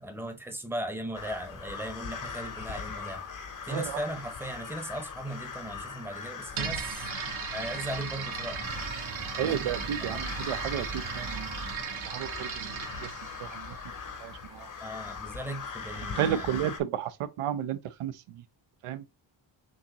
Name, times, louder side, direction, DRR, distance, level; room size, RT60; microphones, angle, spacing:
voice 1, 0.0-3.2 3.7-8.7 9.5-9.7 10.0-10.2 14.8-16.6, right 1 dB, 5° right, 0.7 m, -38 dB
sound 1, 1.1-16.8, left 5 dB, 40° left, 0.7 m, -40 dB
voice 2, 3.7-4.0 9.4-10.9 11.1-11.5 12.1-12.7 13.0-13.1 13.4-13.8 14.2-14.7 16.1-18.1 18.8-19.0, right 10 dB, 90° right, 0.7 m, -32 dB
sound 2, 6.5-14.3, right 7 dB, 70° right, 1.1 m, -37 dB
sound 3, 8.6-12.4, right 3 dB, 35° right, 1.0 m, -43 dB
6.2 x 2.7 x 2.9 m
wide cardioid pair, 170°, 50 cm